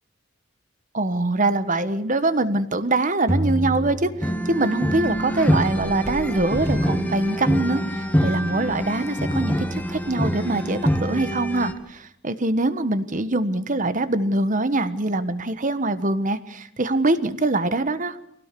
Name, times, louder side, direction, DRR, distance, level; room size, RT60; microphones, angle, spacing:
voice 1, 0.9-18.2, right 2 dB, 40° right, 12 dB, 1.4 m, -24 dB
sound 1, 3.3-5.1, equal, 15° right, 2.0 m, -27 dB
sound 2, 4.2-11.7, equal, 10° left, 1.8 m, -25 dB
24.0 x 17.5 x 6.9 m, 0.72 s
head